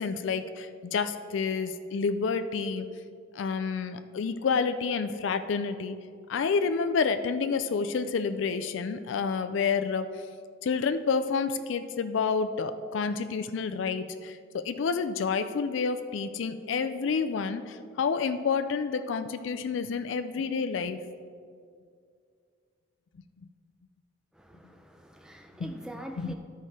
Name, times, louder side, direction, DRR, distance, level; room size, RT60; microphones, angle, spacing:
voice 1, 0.0-2.9 3.4-6.0 6.3-10.1 10.6-21.0 25.6-25.7 26.2-26.3, left 5 dB, 70° left, 9 dB, 0.4 m, -29 dB
voice 2, 24.3-26.3, equal, 5° right, 4 dB, 0.5 m, -44 dB
11.5 x 4.7 x 4.3 m, 2.2 s
head